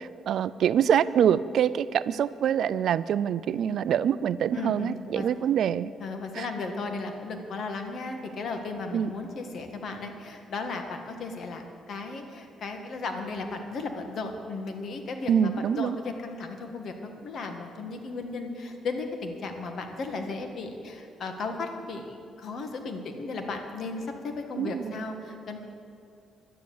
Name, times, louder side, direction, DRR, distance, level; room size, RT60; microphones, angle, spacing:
voice 1, 0.0-5.9 6.3-6.5 8.9-9.1 15.3-16.0 24.6-24.9, right 9 dB, 70° right, 16 dB, 0.4 m, -25 dB
voice 2, 4.5-5.3 6.0-15.5 15.8-25.6, left 3 dB, 60° left, 4 dB, 1.7 m, -35 dB
12.0 x 10.0 x 7.2 m, 2.5 s
cardioid pair, 90°, 0 cm